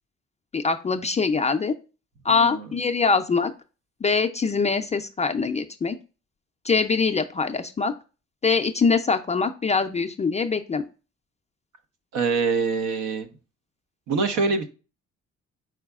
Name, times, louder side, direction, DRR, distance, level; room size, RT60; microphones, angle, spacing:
voice 1, 0.5-1.7 2.2-3.5 4.0-6.0 6.6-7.9 8.4-10.8, left 4 dB, 25° left, 5 dB, 0.3 m, -23 dB
voice 2, 2.3-2.7 12.1-13.3 14.1-14.7, right 4 dB, 80° right, 8 dB, 0.8 m, -24 dB
4.8 x 4.5 x 2.3 m, 0.33 s
cardioid pair, 90°, 30 cm